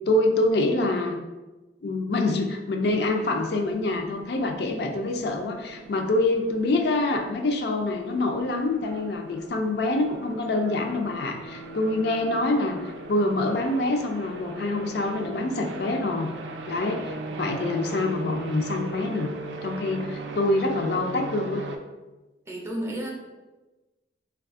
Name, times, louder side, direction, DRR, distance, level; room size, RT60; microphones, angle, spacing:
voice 1, 0.1-1.2 1.8-12.8 13.1-16.3 16.7-19.3 19.6-21.6, left 2 dB, 60° left, 3 dB, 0.4 m, -26 dB
sound 1, 3.0-21.8, right 3 dB, 70° right, 0.3 m, -39 dB
voice 2, 22.5-23.1, right 1 dB, 15° right, -1 dB, 0.5 m, -31 dB
3.3 x 2.3 x 3.5 m, 1.1 s
head